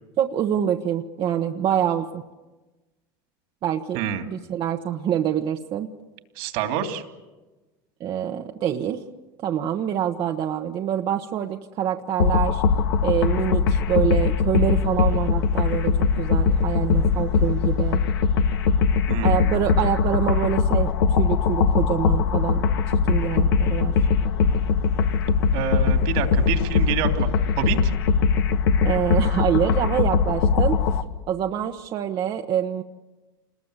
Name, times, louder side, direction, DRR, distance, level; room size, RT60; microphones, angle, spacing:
voice 1, 0.2-2.2 3.6-4.0 4.3-5.9 8.0-9.0 9.4-12.6 13.0-18.0 19.2-23.9 28.8-30.8 31.3-32.8, right 10 dB, 45° right, 4 dB, 1.2 m, -26 dB
voice 2, 6.4-7.0 19.1-19.6 25.5-27.3 27.6-27.9, right 8 dB, 70° right, 6 dB, 3.0 m, -27 dB
sound 1, 12.2-31.0, left 5 dB, 85° left, 1.4 m, -21 dB
27.5 x 20.5 x 8.2 m, 1.2 s
supercardioid pair, 100°, 11 cm